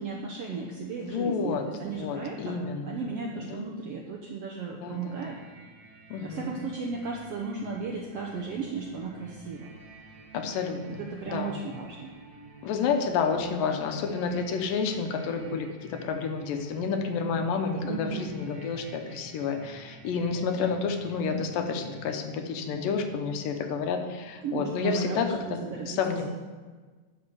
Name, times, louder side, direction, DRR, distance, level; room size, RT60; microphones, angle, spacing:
voice 1, 0.0-5.4 6.2-9.7 10.9-12.1 17.8-18.4 24.4-26.0, right 4 dB, 75° right, 0 dB, 1.4 m, -35 dB
voice 2, 1.0-3.0 3.3-3.7 4.8-5.3 6.1-6.6 10.3-11.0 11.3-11.5 12.6-25.6 25.9-26.3, left 5 dB, 80° left, 6 dB, 2.6 m, -30 dB
sound 1, 4.9-24.7, right 2 dB, 55° right, 2.7 m, -50 dB
12.0 x 5.5 x 6.9 m, 1.4 s
omnidirectional pair, 3.9 m